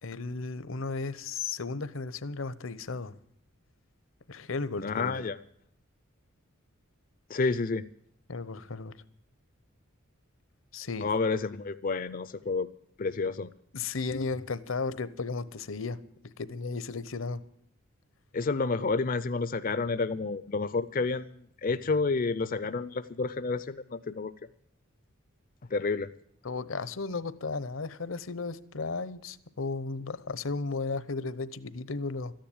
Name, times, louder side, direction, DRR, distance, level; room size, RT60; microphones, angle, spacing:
voice 1, 0.0-3.2 4.3-5.2 8.3-8.9 10.7-11.1 13.7-16.0 16.4-17.4 26.4-32.3, left 4 dB, 70° left, 16 dB, 0.9 m, -34 dB
voice 2, 4.8-5.4 7.3-7.8 11.0-12.7 13.0-13.5 18.3-24.3 25.7-26.1, left 4 dB, 45° left, 14 dB, 0.5 m, -30 dB
13.5 x 10.5 x 8.6 m, 0.67 s
head